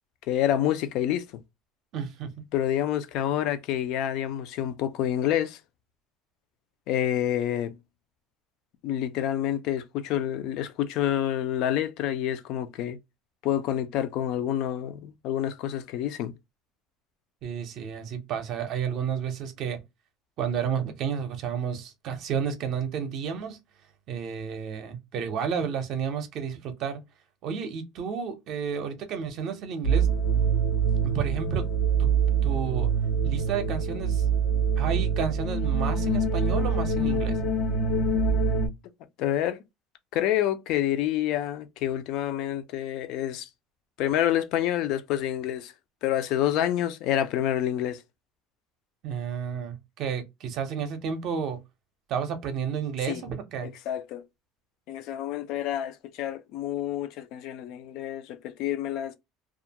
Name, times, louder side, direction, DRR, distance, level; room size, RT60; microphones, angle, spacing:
voice 1, 0.3-1.2 2.5-5.6 6.9-7.7 8.8-13.0 13.4-16.3 39.2-39.6 40.1-43.5 44.0-45.7 46.0-48.0 53.1-53.2 53.6-54.2 54.9-59.1, left 11 dB, 55° left, 0.4 m, -28 dB
voice 2, 1.9-2.3 17.4-19.8 20.4-23.6 24.1-27.0 27.4-30.1 31.0-31.7 32.0-32.1 32.4-32.9 33.2-34.3 34.8-37.4 49.0-51.6 52.1-53.7, right 7 dB, 45° right, 0.6 m, -31 dB
sound 1, 29.8-38.7, right 5 dB, 85° left, 1.0 m, -25 dB
2.3 x 2.1 x 2.7 m
cardioid pair, 160°, 0 cm